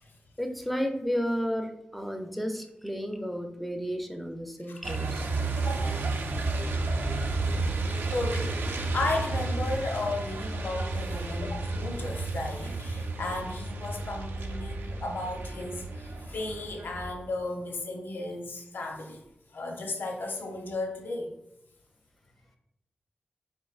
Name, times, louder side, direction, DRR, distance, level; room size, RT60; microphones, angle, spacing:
voice 1, 0.4-5.2, equal, ahead, 4 dB, 0.4 m, -32 dB
Truck, 4.8-17.1, right 3 dB, 80° right, 0.4 m, -32 dB
voice 2, 5.6-6.0 6.5-6.7 8.1-8.6 8.9-19.2 19.5-21.3, left 2 dB, 75° left, 2 dB, 0.6 m, -34 dB
4.3 x 3.6 x 2.3 m, 0.86 s
wide cardioid pair, 140°, 4 cm